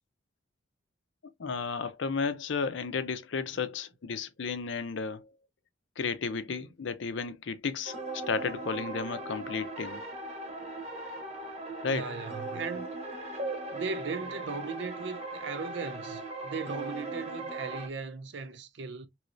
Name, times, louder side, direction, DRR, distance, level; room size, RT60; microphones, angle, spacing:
voice 1, 1.4-5.3 6.0-10.0 11.8-12.1, left 5 dB, 65° left, 0.5 m, -33 dB
sound 1, 7.9-17.9, right 2 dB, 35° right, 0.8 m, -39 dB
voice 2, 11.9-12.9 13.7-19.1, right 4 dB, 60° right, 0.5 m, -37 dB
3.1 x 3.0 x 2.5 m
head